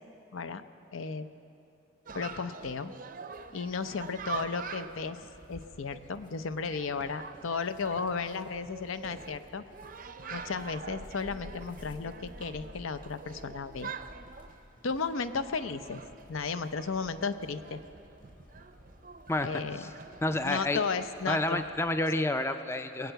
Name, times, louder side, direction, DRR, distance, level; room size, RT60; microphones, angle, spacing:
voice 1, 0.9-1.3 2.1-2.9 3.5-5.2 5.5-9.6 10.3-14.0 14.8-16.0 16.3-17.8 19.4-19.8 20.4-21.6 22.2-22.3, left 5 dB, 80° left, 11 dB, 0.6 m, -34 dB
Chatter, 2.1-21.7, right 5 dB, 40° right, 0.5 m, -46 dB
sound 1, 3.3-22.1, equal, 40° left, 1.5 m, -54 dB
voice 2, 20.2-20.8 21.3-23.1, left 1 dB, 10° left, 9 dB, 0.4 m, -29 dB
21.0 x 8.0 x 7.9 m, 2.8 s
head